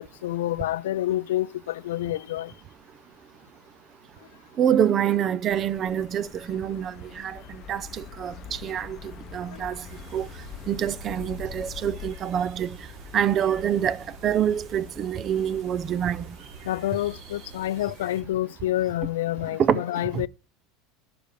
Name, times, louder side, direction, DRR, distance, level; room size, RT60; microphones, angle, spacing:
voice 1, 0.0-2.5 9.5-9.7 16.6-20.3, left 14 dB, 90° left, 0.3 m, -28 dB
voice 2, 4.6-7.4 7.7-9.0 9.3-9.8 10.1-10.3 10.7-12.8 13.1-16.3 19.6-19.8 20.1-20.2, right 9 dB, 35° right, 0.5 m, -26 dB
sound 1, 5.5-12.2, left 14 dB, 45° left, 0.7 m, -45 dB
sound 2, 6.2-17.2, left 4 dB, ahead, 1.8 m, -48 dB
sound 3, 9.9-18.2, right 4 dB, 55° right, 2.9 m, -47 dB
10.0 x 3.4 x 6.8 m
supercardioid pair, 125°, 0 cm